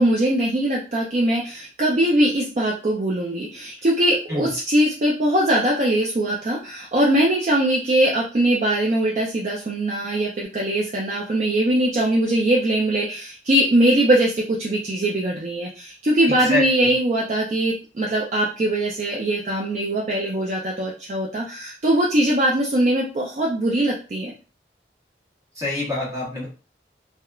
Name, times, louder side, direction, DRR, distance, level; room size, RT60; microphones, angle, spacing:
voice 1, 0.0-24.3, right 1 dB, 40° right, -2 dB, 0.4 m, -21 dB
voice 2, 16.3-16.6 25.6-26.5, left 2 dB, 15° right, -4 dB, 0.9 m, -26 dB
2.9 x 2.1 x 2.3 m, 0.36 s
head